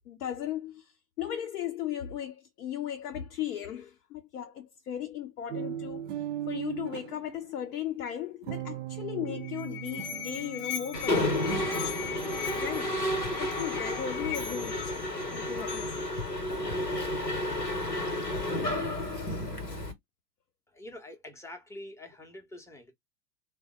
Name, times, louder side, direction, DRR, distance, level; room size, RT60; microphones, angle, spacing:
voice 1, 0.1-6.1 6.5-11.5 12.5-13.0 13.3-15.0 15.3-16.1, left 10 dB, 70° left, 0.7 m, -36 dB
sound 1, 5.5-7.5 8.4-13.2, right 11 dB, 50° right, 0.5 m, -39 dB
Musical instrument, 9.3-16.2, left 9 dB, 40° left, 0.8 m, -40 dB
Mechanisms, 10.9-19.9, left 1 dB, 90° left, 1.0 m, -31 dB
voice 2, 20.7-22.9, left 1 dB, 5° left, 0.6 m, -45 dB
3.3 x 2.0 x 3.0 m
figure-of-eight pair, 85°, 48 cm